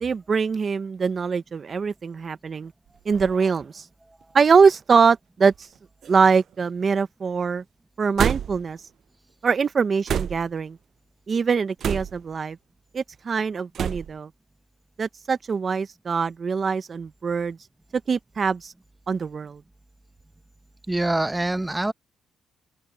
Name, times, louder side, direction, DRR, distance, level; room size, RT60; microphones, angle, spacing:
voice 1, 0.0-2.7 3.0-3.8 4.3-5.5 6.1-7.6 8.0-8.8 9.4-10.8 11.3-12.6 12.9-14.3 15.0-17.6 18.1-18.7 19.1-19.6, right 5 dB, 40° right, 1.1 m, -23 dB
sound 1, 2.9-3.4 4.2-4.3 5.5-5.8 6.0-6.6 8.2-8.7 10.1-10.6 11.8-12.3 13.7-14.2, right 9 dB, 60° right, 0.3 m, -29 dB
voice 2, 20.9-21.9, right 2 dB, 15° right, 1.1 m, -24 dB
open air
cardioid pair, 90°, 0 cm